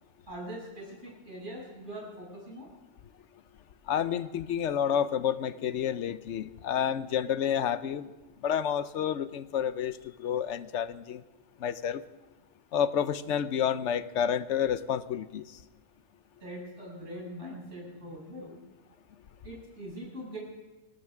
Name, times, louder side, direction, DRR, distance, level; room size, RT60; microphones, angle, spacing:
voice 1, 0.3-2.7 16.4-18.6 19.4-20.4, equal, 85° right, -4 dB, 7.3 m, -42 dB
voice 2, 3.9-8.1 8.4-11.2 11.6-12.0 12.7-15.4, left 9 dB, 80° left, 14 dB, 1.0 m, -29 dB
22.0 x 17.5 x 3.6 m, 1.2 s
omnidirectional pair, 1.2 m